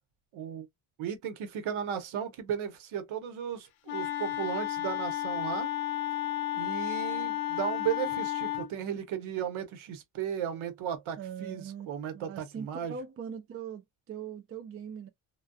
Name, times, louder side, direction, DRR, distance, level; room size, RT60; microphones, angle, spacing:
voice 1, 0.3-0.7 1.0-5.7 6.5-12.9, right 9 dB, 75° right, 0.9 m, -35 dB
Wind instrument woodwind instrument, 3.9-8.7, left 13 dB, 70° left, 0.6 m, -32 dB
voice 2, 11.2-11.9 12.1-15.1, right 7 dB, 30° right, 0.4 m, -41 dB
2.2 x 2.2 x 2.5 m
cardioid pair, 110°, 49 cm